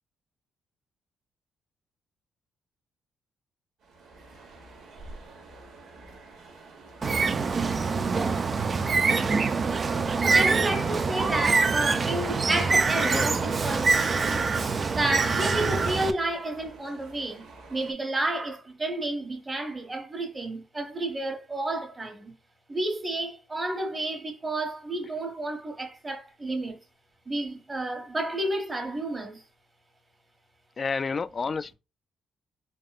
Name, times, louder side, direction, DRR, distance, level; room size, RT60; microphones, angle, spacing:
sound 1, 3.8-17.9, right 3 dB, 80° right, 1.3 m, -48 dB
Bird, 7.0-16.1, right 4 dB, 40° right, 0.4 m, -25 dB
voice 1, 10.2-14.4 14.9-22.3 22.7-26.8 27.2-29.4, right 2 dB, 25° right, 1.3 m, -31 dB
voice 2, 30.8-31.7, left 5 dB, 35° left, 0.3 m, -30 dB
3.7 x 3.6 x 2.5 m
cardioid pair, 90°, 0 cm